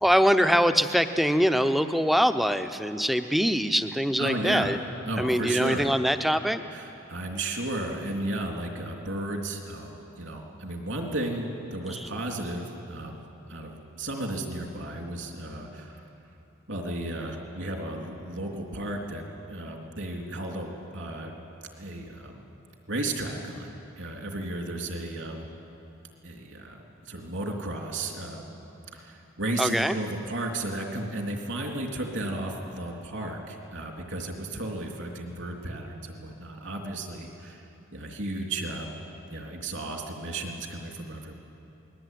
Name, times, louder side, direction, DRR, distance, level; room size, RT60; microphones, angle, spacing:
voice 1, 0.0-4.8 5.2-6.7 11.9-12.1 29.6-29.9, equal, ahead, 9 dB, 0.7 m, -23 dB
voice 2, 4.2-4.7 5.1-5.9 6.7-13.2 13.5-16.0 16.7-21.4 21.8-22.4 22.9-25.5 26.2-28.6 28.9-37.6 37.9-39.0 39.3-41.3, right 1 dB, 65° right, 1 dB, 3.4 m, -34 dB
28.0 x 20.5 x 9.4 m, 2.9 s
head